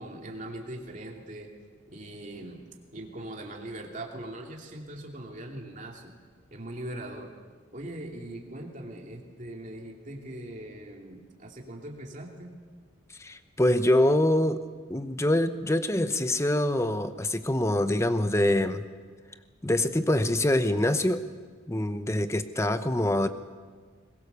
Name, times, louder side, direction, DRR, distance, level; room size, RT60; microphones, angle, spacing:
voice 1, 0.0-1.5 1.9-2.6 2.9-6.1 6.5-7.3 7.7-12.6, right 1 dB, 40° right, 1 dB, 2.7 m, -41 dB
voice 2, 13.2-14.6 14.9-18.8 19.6-21.2 21.7-23.3, left 1 dB, 15° left, 10 dB, 0.9 m, -25 dB
22.0 x 20.5 x 6.8 m, 1.5 s
head